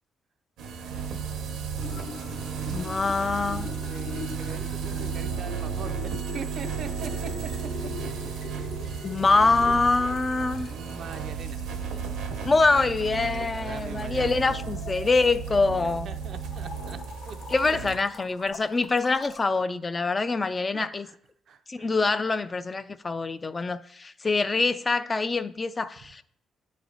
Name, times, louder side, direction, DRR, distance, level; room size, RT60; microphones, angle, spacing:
sound 1, 0.6-17.9, right 6 dB, 85° right, 1.0 m, -34 dB
voice 1, 0.8-1.2 3.1-3.3 3.8-7.7 8.8-9.0 10.7-11.9 13.2-14.5 16.0-17.0 17.2-17.4 17.7-17.8 20.4-21.2 21.5-21.9, right 6 dB, 60° right, 0.5 m, -42 dB
sound 2, 1.8-19.4, left 5 dB, 75° left, 0.8 m, -44 dB
voice 2, 2.7-3.7 9.0-10.7 12.4-16.1 17.5-21.1 21.7-26.2, left 3 dB, 30° left, 0.3 m, -25 dB
9.3 x 3.2 x 3.8 m
cardioid pair, 90°, 0 cm